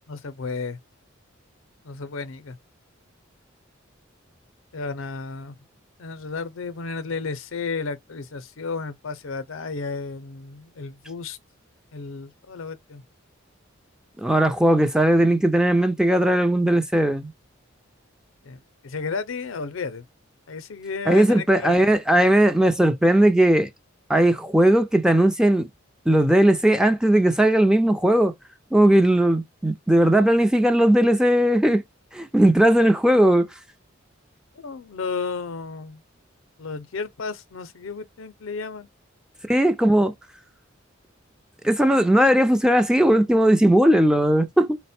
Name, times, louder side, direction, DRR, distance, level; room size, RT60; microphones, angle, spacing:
voice 1, 0.1-0.8 1.8-2.6 4.7-5.6 6.0-11.4 11.9-13.0 18.4-20.0 20.5-21.8 34.6-36.0 36.6-38.9 39.9-40.1, left 4 dB, 75° left, 0.6 m, -33 dB
voice 2, 14.2-17.3 21.1-23.7 24.1-25.7 26.1-28.3 28.7-31.8 32.1-33.5 39.5-40.1 41.6-44.8, right 1 dB, 5° right, 0.5 m, -18 dB
4.1 x 2.1 x 4.2 m
head